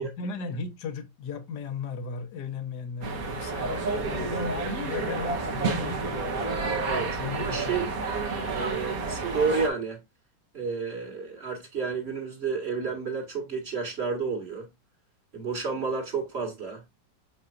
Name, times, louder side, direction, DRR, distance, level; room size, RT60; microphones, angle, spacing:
voice 1, 0.0-6.8 7.2-7.8, left 5 dB, 65° left, 1.5 m, -36 dB
sound 1, 3.0-9.7, right 3 dB, 55° right, 1.6 m, -30 dB
voice 2, 6.9-7.9 8.5-10.0 10.5-14.7 15.3-16.8, right 5 dB, 35° right, 2.2 m, -31 dB
6.5 x 5.7 x 2.5 m
omnidirectional pair, 1.9 m